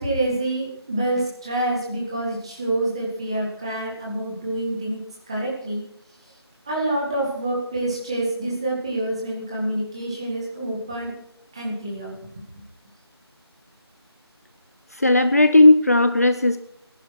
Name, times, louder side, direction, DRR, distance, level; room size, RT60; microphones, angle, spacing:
voice 1, 0.0-5.8 6.7-11.2 11.5-12.3, right 1 dB, 10° right, -3 dB, 1.9 m, -27 dB
voice 2, 14.9-16.6, left 2 dB, 35° left, 9 dB, 0.6 m, -15 dB
18.5 x 11.0 x 4.6 m, 0.77 s
figure-of-eight pair, 175°, 14 cm